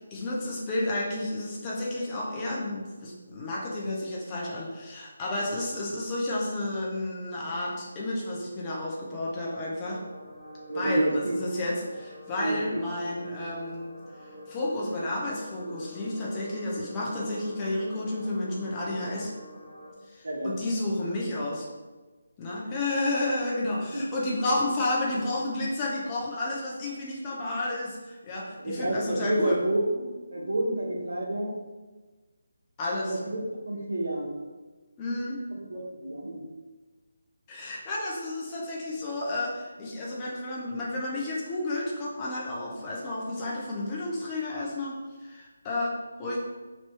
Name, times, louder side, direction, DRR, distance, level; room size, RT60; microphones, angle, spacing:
voice 1, 0.1-10.0 10.7-13.9 14.5-19.3 20.1-21.7 22.4-29.6 32.8-33.2 35.0-35.4 37.5-46.4, left 1 dB, 20° left, -4 dB, 0.8 m, -31 dB
sound 1, 9.8-19.9, left 1 dB, 45° left, 1.5 m, -46 dB
voice 2, 10.7-11.3 12.4-12.6 20.2-20.5 23.9-24.0 28.6-30.0 30.3-31.5 33.1-34.3 35.5-36.4, right 1 dB, 65° right, -3 dB, 1.2 m, -29 dB
3.3 x 2.9 x 4.5 m, 1.3 s
figure-of-eight pair, 155°, 0 cm